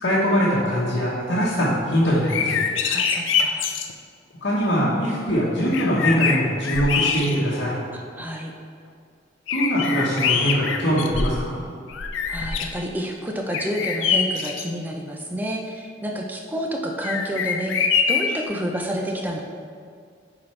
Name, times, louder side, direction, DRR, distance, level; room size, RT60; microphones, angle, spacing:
voice 1, 0.0-2.6 4.4-7.8 9.5-11.6, equal, 65° left, -8 dB, 1.1 m, -22 dB
sound 1, 2.3-3.9 5.3-5.4 5.7-7.7 8.2-8.3 9.5-11.5 11.9-12.8 13.5-14.7 17.0-18.4, left 6 dB, 80° left, 0.5 m, -24 dB
voice 2, 2.8-3.7 7.9-8.5 12.3-19.4, equal, 10° right, 1 dB, 0.5 m, -29 dB
8.8 x 4.2 x 3.2 m, 2.2 s
head